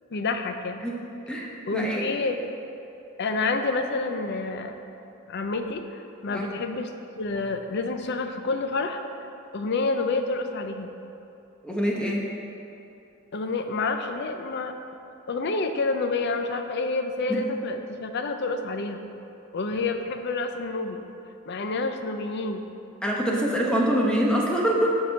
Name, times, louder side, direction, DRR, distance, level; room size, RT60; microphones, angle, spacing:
voice 1, 0.1-0.8 1.7-2.4 3.2-4.7 5.0-6.9 7.2-9.3 9.5-10.9 13.3-14.7 15.3-19.0 19.5-21.0 21.5-22.7, left 3 dB, 55° left, 6 dB, 0.6 m, -28 dB
voice 2, 1.3-2.1 6.3-6.5 11.6-12.3 23.0-25.0, right 1 dB, 5° left, -2 dB, 0.9 m, -25 dB
8.4 x 4.8 x 5.6 m, 2.8 s
head